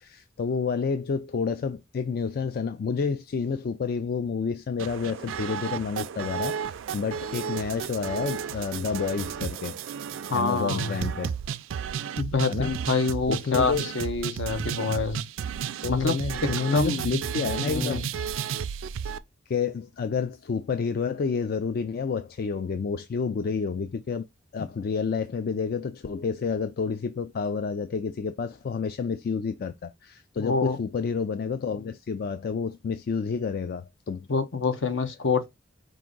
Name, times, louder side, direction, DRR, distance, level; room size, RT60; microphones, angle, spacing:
voice 1, 0.0-9.8 10.3-11.4 12.4-13.0 13.3-13.9 14.7-15.0 15.8-18.1 19.5-24.3 24.5-34.3, left 5 dB, 50° left, 0.3 m, -29 dB
sound 1, 4.8-19.2, right 8 dB, 75° right, 0.3 m, -33 dB
voice 2, 10.3-11.0 12.2-15.2 15.9-17.1 17.6-18.1 30.4-30.8 34.3-35.4, left 4 dB, 70° left, 0.8 m, -26 dB
4.8 x 2.5 x 3.8 m
head